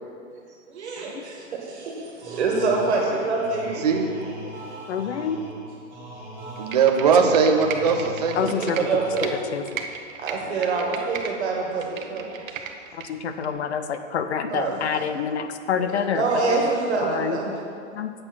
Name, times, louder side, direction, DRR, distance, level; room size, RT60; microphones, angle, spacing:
voice 1, 0.7-3.9 8.4-9.4 10.2-12.5 14.5-14.8 15.8-17.5, right 3 dB, 55° right, -1 dB, 1.9 m, -26 dB
sound 1, 2.2-9.6, right 1 dB, 10° right, 1.3 m, -39 dB
voice 2, 3.8-4.1 6.6-8.6, right 5 dB, 30° right, 3 dB, 0.5 m, -20 dB
voice 3, 4.9-5.4 8.4-8.8 9.5-9.6 13.0-16.6 17.0-17.6 17.9-18.1, left 7 dB, 55° left, 9 dB, 0.7 m, -27 dB
Computer keyboard, 6.6-9.3 9.7-11.3 11.7-13.1 13.4-13.5, right 8 dB, 80° right, 1.0 m, -35 dB
7.8 x 6.3 x 6.0 m, 2.3 s
hypercardioid pair, 175°, 40 cm